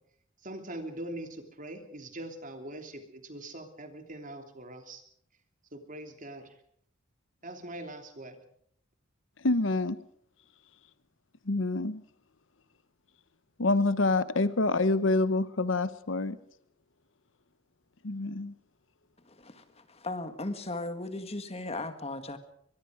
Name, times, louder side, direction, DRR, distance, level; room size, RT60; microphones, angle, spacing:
voice 1, 0.4-5.0 5.7-6.5 7.4-8.4, right 1 dB, 40° right, 3.0 m, -42 dB
voice 2, 9.4-10.0 11.5-12.0 13.6-16.4 18.0-18.5, left 2 dB, 70° left, 1.0 m, -26 dB
voice 3, 19.3-22.4, left 2 dB, 30° left, 1.9 m, -37 dB
23.0 x 22.5 x 5.0 m
head